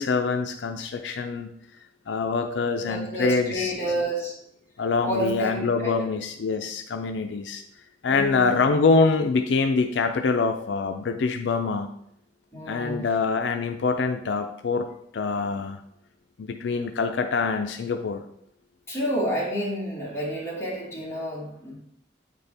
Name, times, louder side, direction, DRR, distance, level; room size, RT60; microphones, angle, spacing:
voice 1, 0.0-1.5 2.1-3.7 4.8-7.6 8.0-11.9 12.7-14.9 15.1-15.8 16.4-18.2, left 4 dB, 80° left, 6 dB, 0.4 m, -25 dB
voice 2, 2.8-4.3 5.0-6.0 8.1-8.6 12.5-13.1 18.9-21.8, right 1 dB, 15° left, -7 dB, 2.1 m, -29 dB
8.5 x 4.2 x 3.4 m, 0.74 s
head